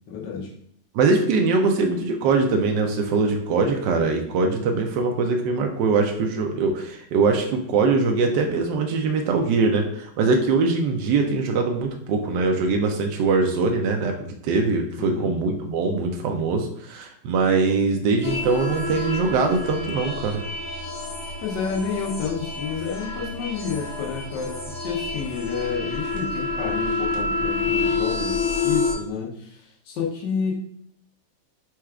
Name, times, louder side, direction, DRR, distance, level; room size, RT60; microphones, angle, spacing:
voice 1, 0.1-0.5 15.0-15.3 21.4-30.6, left 6 dB, 85° left, -2 dB, 1.5 m, -30 dB
voice 2, 0.9-14.1 14.4-20.4, right 4 dB, 80° right, 3 dB, 1.2 m, -22 dB
sound 1, 18.2-28.9, left 3 dB, 55° left, 1.3 m, -28 dB
4.4 x 2.3 x 4.7 m, 0.69 s
omnidirectional pair, 1.9 m